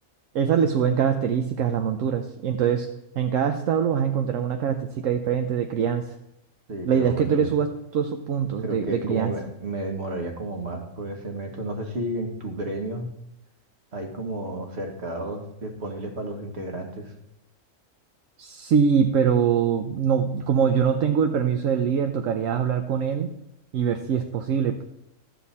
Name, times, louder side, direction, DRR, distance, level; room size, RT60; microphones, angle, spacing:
voice 1, 0.3-2.9 3.2-6.1 6.8-9.3 18.4-23.3 23.7-24.8, right 7 dB, 75° right, 6 dB, 1.1 m, -23 dB
voice 2, 6.7-7.5 8.6-13.1 13.9-17.1, right 1 dB, 55° right, 3 dB, 1.8 m, -32 dB
12.5 x 8.2 x 4.2 m, 0.85 s
omnidirectional pair, 1.4 m